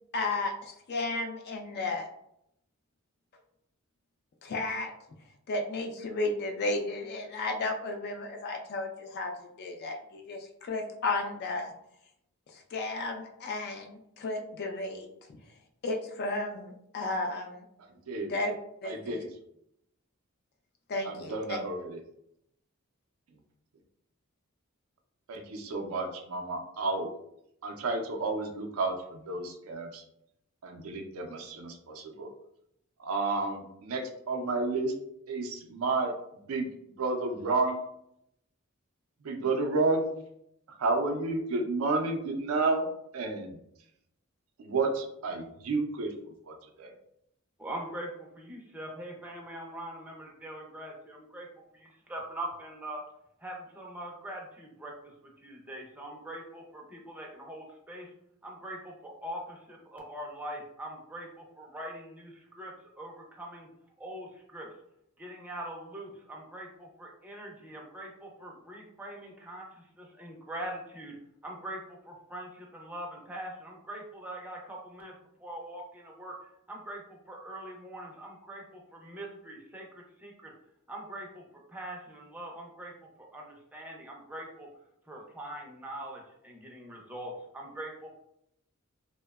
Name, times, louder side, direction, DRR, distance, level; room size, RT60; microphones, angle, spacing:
voice 1, 0.1-2.1 4.4-4.9 5.5-11.7 12.5-15.1 15.8-17.6 18.3-18.5 18.8-19.2 20.9-21.6, left 2 dB, 50° left, 3 dB, 0.3 m, -33 dB
voice 2, 17.8-18.3 18.8-19.3 21.0-22.0 25.3-27.1 27.6-30.0 30.6-32.3 33.0-34.9 35.3-37.8 39.2-40.1 40.7-42.9 43.1-43.6 44.6-46.9, right 3 dB, 75° right, 4 dB, 0.4 m, -31 dB
voice 3, 47.6-51.5 51.7-53.0 53.4-54.9 55.4-58.1 58.4-63.7 64.0-64.7 65.2-71.1 71.4-75.1 75.4-76.3 76.7-80.5 80.9-82.9 83.2-84.7 85.1-88.2, right 1 dB, 10° right, -1 dB, 0.5 m, -42 dB
2.7 x 2.1 x 2.2 m, 0.76 s
head